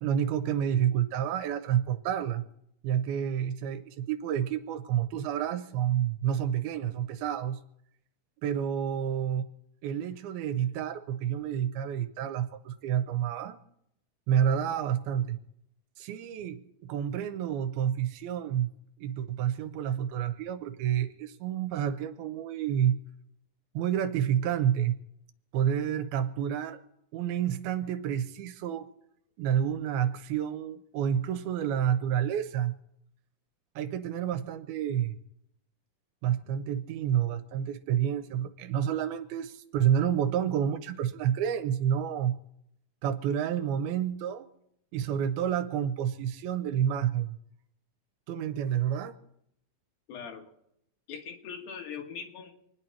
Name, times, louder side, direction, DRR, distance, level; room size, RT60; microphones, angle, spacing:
voice 1, 0.0-2.4 2.8-7.6 8.4-9.4 9.8-13.6 14.3-15.4 16.0-18.7 19.0-23.0 23.7-25.0 25.5-26.8 27.1-28.9 29.4-32.8 33.8-35.2 36.2-42.4 43.0-44.5 44.9-47.4 48.3-49.1, right 9 dB, 80° right, 9 dB, 2.7 m, -29 dB
voice 2, 50.1-50.4 51.1-52.5, left 6 dB, 70° left, 2 dB, 3.4 m, -41 dB
26.5 x 10.0 x 4.5 m, 0.78 s
omnidirectional pair, 4.5 m